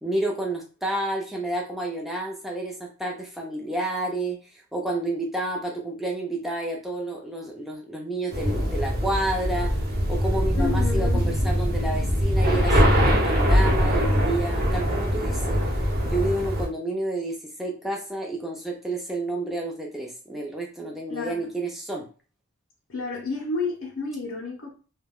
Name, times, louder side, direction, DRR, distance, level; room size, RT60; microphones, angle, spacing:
voice 1, 0.0-9.7 10.1-15.6 16.1-22.1, right 2 dB, ahead, 0.4 m, -30 dB
sound 1, 8.3-16.7, equal, 45° right, 0.8 m, -22 dB
voice 2, 10.6-11.3 21.1-21.5 22.9-24.7, left 4 dB, 70° left, 0.6 m, -31 dB
2.2 x 2.2 x 3.5 m
head